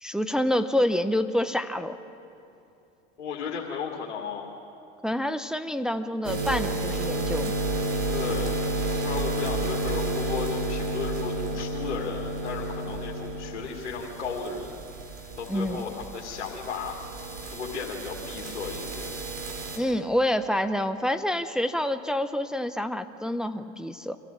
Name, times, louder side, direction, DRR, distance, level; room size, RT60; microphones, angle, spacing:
voice 1, 0.0-2.0 5.0-7.5 15.5-15.8 19.8-24.2, left 1 dB, ahead, 9 dB, 0.7 m, -27 dB
voice 2, 3.2-4.5 8.1-14.8 15.4-17.0 17.5-19.1, left 5 dB, 90° left, -3 dB, 2.3 m, -34 dB
sound 1, 6.2-19.8, right 2 dB, 75° right, 4.0 m, -31 dB
25.5 x 14.0 x 7.5 m, 2.7 s
hypercardioid pair, 85°, 35 cm